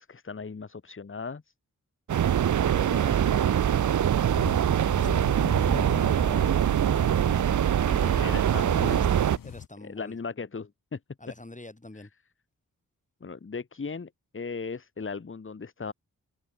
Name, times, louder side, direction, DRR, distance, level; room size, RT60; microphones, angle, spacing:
voice 1, 0.0-1.4 7.9-9.0 9.8-11.0 12.0-12.1 13.2-15.9, left 4 dB, 35° left, 1.4 m, -37 dB
sound 1, 2.1-9.4, right 9 dB, 60° right, 0.6 m, -23 dB
voice 2, 2.7-4.0 4.6-5.3 5.7-7.4 7.9-10.2 11.2-12.1, left 2 dB, 20° left, 7.3 m, -45 dB
sound 2, 4.3-9.7, left 8 dB, 70° left, 1.4 m, -41 dB
cardioid pair, 55°, 35 cm